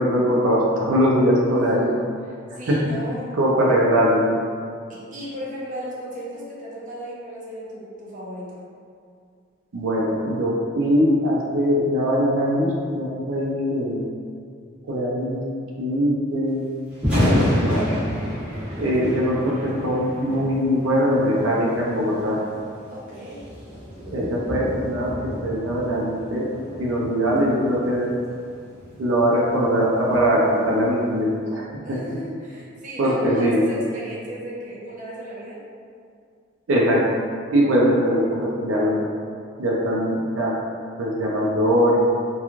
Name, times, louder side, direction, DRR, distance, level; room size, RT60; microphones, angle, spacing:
voice 1, 0.0-1.9 2.7-2.8 3.4-4.3 9.7-14.0 14.9-15.4 15.8-16.6 17.1-17.9 18.8-22.4 24.1-26.5 26.8-28.1 29.0-31.6 31.9-32.0 33.0-33.6 36.7-37.0 37.5-39.0 39.6-40.5 41.0-42.0, equal, 85° right, -4 dB, 0.4 m, -21 dB
voice 2, 1.5-1.9 2.2-3.4 4.9-8.6 22.9-23.5 31.8-35.6, equal, 40° right, -6 dB, 0.6 m, -35 dB
Thunder, 16.9-31.0, equal, 5° right, 1.0 m, -30 dB
2.9 x 2.3 x 2.4 m, 2.3 s
head